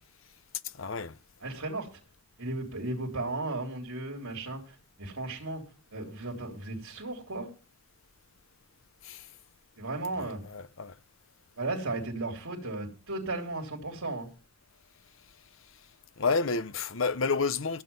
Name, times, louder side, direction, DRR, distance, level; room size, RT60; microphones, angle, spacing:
voice 1, 0.6-1.2 9.0-9.3 10.2-11.0 16.2-17.8, left 4 dB, 70° left, 0.8 m, -30 dB
voice 2, 1.4-1.9 2.4-5.6 5.9-7.5 9.8-10.4 11.6-14.3, right 2 dB, 90° right, 3.4 m, -35 dB
15.0 x 8.4 x 5.4 m
head